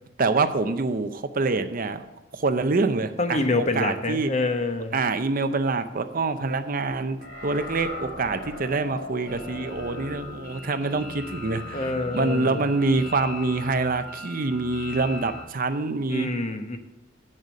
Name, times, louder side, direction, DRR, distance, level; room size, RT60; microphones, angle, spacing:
voice 1, 0.2-2.1 2.3-4.3 4.9-16.3, right 3 dB, 45° right, 9 dB, 0.6 m, -26 dB
voice 2, 3.2-4.9 11.7-12.6 16.1-16.8, left 2 dB, 35° left, 6 dB, 1.0 m, -26 dB
sound 1, 7.2-15.4, left 2 dB, 55° left, 3.4 m, -39 dB
8.7 x 6.6 x 6.3 m, 1.0 s
head